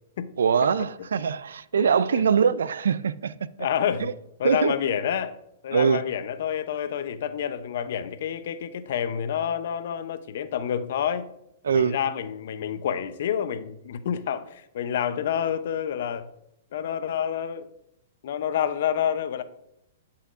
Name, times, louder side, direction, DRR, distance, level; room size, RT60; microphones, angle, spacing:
voice 1, 0.4-3.5 4.0-4.1 4.4-4.7 5.7-6.0 11.6-11.9, right 6 dB, 85° right, 0.4 m, -23 dB
voice 2, 1.7-2.5 3.6-4.1 4.4-5.4 5.6-11.3 11.7-16.3 16.7-17.7 18.2-19.4, left 9 dB, 65° left, 0.7 m, -28 dB
12.0 x 5.8 x 2.5 m
hypercardioid pair, 135°, 0 cm